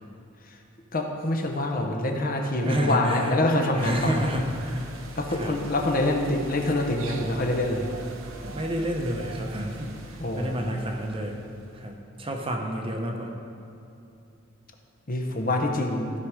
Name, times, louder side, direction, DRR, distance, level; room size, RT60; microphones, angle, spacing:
voice 1, 0.9-4.2 5.2-7.9 10.2-10.8 15.1-16.1, left 1 dB, 45° left, 2 dB, 1.0 m, -25 dB
voice 2, 2.6-3.4 3.7-4.8 5.3-5.6 8.4-9.9 10.3-11.4 11.8-13.3, equal, 25° right, 2 dB, 0.9 m, -29 dB
sound 1, 3.8-11.9, right 2 dB, 90° right, 0.9 m, -42 dB
15.0 x 5.1 x 4.9 m, 2.8 s
head